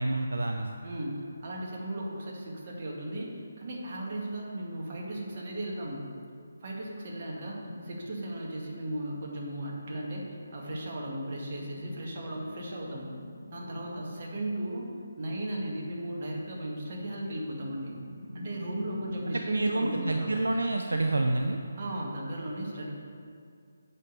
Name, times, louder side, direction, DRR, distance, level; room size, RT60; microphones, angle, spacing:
voice 1, 0.0-0.7 19.3-21.6, right 2 dB, 80° right, 4 dB, 0.6 m, -28 dB
voice 2, 0.8-6.1 6.6-13.1 13.5-18.0 18.3-20.4 21.7-22.9, right 1 dB, 45° right, -3 dB, 2.0 m, -36 dB
sound 1, 7.6-8.4 10.1-14.6 16.1-19.6, left 1 dB, 90° left, 1.0 m, -45 dB
8.2 x 5.3 x 6.8 m, 2.3 s
figure-of-eight pair, 150°, 0 cm